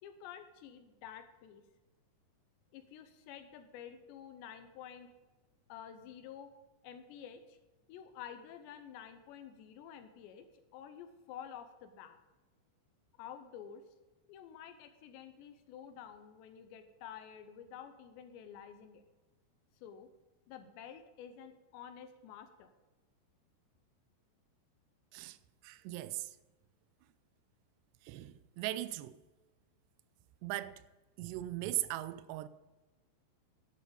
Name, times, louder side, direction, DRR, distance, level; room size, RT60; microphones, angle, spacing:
voice 1, 0.0-1.6 2.7-5.1 5.7-6.5 6.8-7.6 7.9-10.4 10.7-12.2 13.2-13.8 14.3-19.0 19.8-20.1 20.5-22.7, left 9 dB, 80° left, 2.8 m, -50 dB
voice 2, 25.6-26.3 28.0-29.2 30.4-30.8 31.2-32.5, right 15 dB, 85° right, 2.4 m, -39 dB
12.0 x 8.6 x 5.2 m
omnidirectional pair, 5.4 m